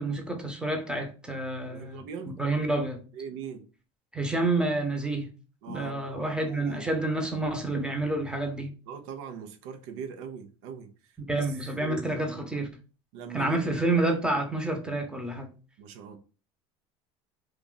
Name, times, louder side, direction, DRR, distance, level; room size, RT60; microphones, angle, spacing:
voice 1, 0.0-3.0 4.1-5.3 5.7-8.7 11.2-12.7 13.3-15.5, right 2 dB, 5° right, 0.9 m, -29 dB
voice 2, 1.7-2.4 3.1-3.7 5.6-6.8 8.9-10.9 11.3-11.5 11.8-12.5 13.1-13.6 15.8-16.2, right 7 dB, 70° right, 0.7 m, -41 dB
2.5 x 2.4 x 3.8 m
hypercardioid pair, 85°, 16 cm